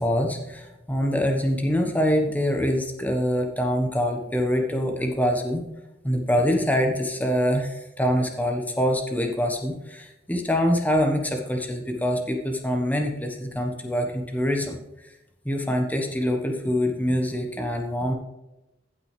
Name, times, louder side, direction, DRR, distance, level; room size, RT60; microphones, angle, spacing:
voice 1, 0.0-5.6 6.0-14.8 15.4-18.1, equal, 10° left, 2 dB, 1.2 m, -25 dB
15.5 x 6.0 x 3.3 m, 0.95 s
head